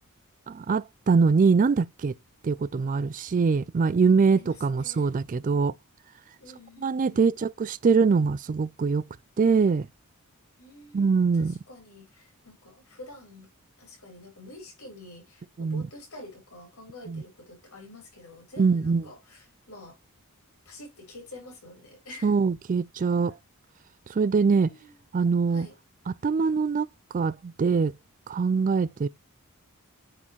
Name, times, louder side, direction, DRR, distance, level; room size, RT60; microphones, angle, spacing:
voice 1, 0.5-2.1 2.4-5.7 6.8-9.0 9.4-9.9 10.9-11.5 15.6-15.8 17.1-17.2 18.6-19.1 22.2-23.3 24.1-24.7 25.1-25.7 26.1-26.9 27.1-27.9 28.3-29.1, right 5 dB, 35° right, 0.3 m, -23 dB
voice 2, 4.3-5.1 6.4-7.3 10.6-13.5 13.8-20.0 20.7-22.3 24.4-24.9 25.5-25.7, left 1 dB, 75° left, 3.9 m, -47 dB
8.9 x 4.3 x 3.0 m
head